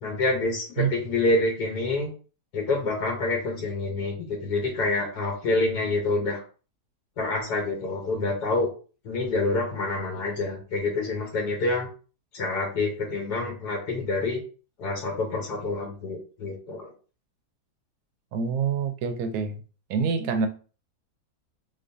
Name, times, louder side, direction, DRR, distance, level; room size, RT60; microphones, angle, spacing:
voice 1, 0.0-2.1 2.5-6.4 7.2-8.7 9.0-11.9 12.3-14.4 14.8-16.9, left 2 dB, 75° left, 1.5 m, -27 dB
voice 2, 18.3-19.6 19.9-20.5, right 5 dB, 70° right, 1.0 m, -26 dB
3.8 x 3.2 x 2.6 m
omnidirectional pair, 1.8 m